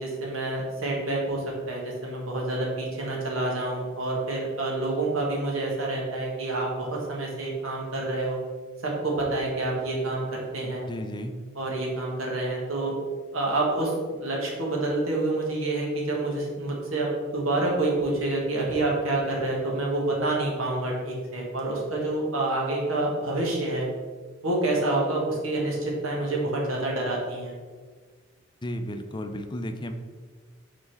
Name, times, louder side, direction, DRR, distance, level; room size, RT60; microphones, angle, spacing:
voice 1, 0.0-8.4 8.8-10.8 11.5-12.9 13.3-13.9 14.2-23.9 24.4-27.5, right 2 dB, 90° right, -2 dB, 1.6 m, -28 dB
voice 2, 10.9-11.4 28.6-29.9, equal, 20° left, 6 dB, 0.4 m, -33 dB
5.5 x 4.1 x 4.6 m, 1.5 s
head